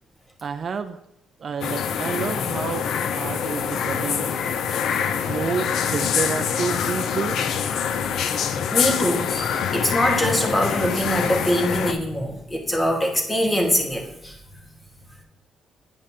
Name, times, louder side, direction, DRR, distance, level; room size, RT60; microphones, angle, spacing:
voice 1, 0.4-1.0 1.4-2.9 3.2-4.4 5.2-7.5, right 6 dB, 50° right, 9 dB, 0.3 m, -29 dB
sound 1, 1.6-11.9, left 7 dB, 75° left, 0.4 m, -25 dB
voice 2, 8.7-14.4, equal, 20° left, 2 dB, 1.3 m, -23 dB
8.6 x 5.3 x 2.7 m, 0.81 s
cardioid pair, 90°, 0 cm